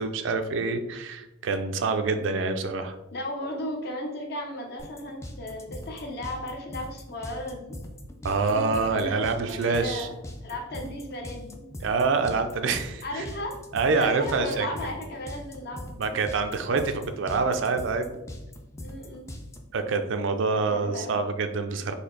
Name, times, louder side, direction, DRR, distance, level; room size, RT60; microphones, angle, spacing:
voice 1, 0.0-3.0 8.2-10.1 11.8-13.2 13.7-14.7 16.0-18.1 19.7-21.9, right 4 dB, 60° right, 8 dB, 0.4 m, -26 dB
voice 2, 3.1-7.8 8.4-10.1 10.4-11.6 13.0-13.6 13.9-16.0 18.8-19.3 20.3-21.2, left 1 dB, 50° left, 2 dB, 0.8 m, -35 dB
sound 1, 4.8-19.6, left 1 dB, 15° left, 0.4 m, -40 dB
4.3 x 2.8 x 3.9 m, 0.96 s
head